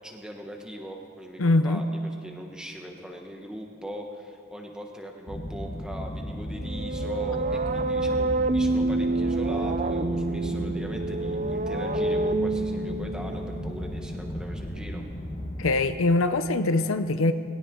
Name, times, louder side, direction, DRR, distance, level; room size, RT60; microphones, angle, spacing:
voice 1, 0.0-15.0, equal, 5° right, 1 dB, 1.4 m, -40 dB
voice 2, 1.4-1.8 15.6-17.3, left 2 dB, 90° left, 10 dB, 0.7 m, -23 dB
sound 1, 5.3-15.8, equal, 35° left, 1.3 m, -35 dB
sound 2, 6.6-14.3, right 2 dB, 35° right, 0.6 m, -28 dB
20.0 x 17.5 x 3.8 m, 2.3 s
head